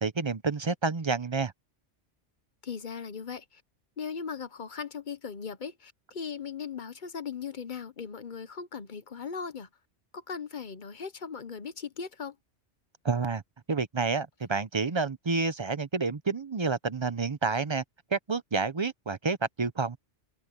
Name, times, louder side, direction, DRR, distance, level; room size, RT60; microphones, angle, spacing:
voice 1, 0.0-1.5 13.0-13.4 13.7-17.8 18.1-20.0, right 4 dB, 30° right, 0.7 m, -29 dB
voice 2, 2.6-3.6 4.0-9.7 10.1-12.4, left 6 dB, 45° left, 0.9 m, -38 dB
omnidirectional pair, 1.2 m